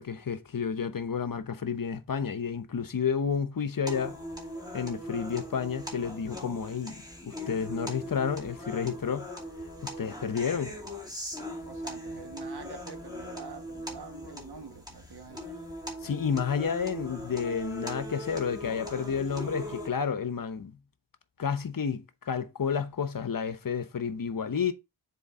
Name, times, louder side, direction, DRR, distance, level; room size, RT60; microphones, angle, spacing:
voice 1, 0.0-4.1 4.7-9.3 9.8-10.7 16.0-20.7 21.4-24.7, left 6 dB, 50° left, 0.8 m, -31 dB
sound 1, 3.9-19.9, equal, 10° right, 2.5 m, -40 dB
voice 2, 11.7-15.5, right 5 dB, 65° right, 1.6 m, -46 dB
7.0 x 4.3 x 3.7 m
wide cardioid pair, 85°, 43 cm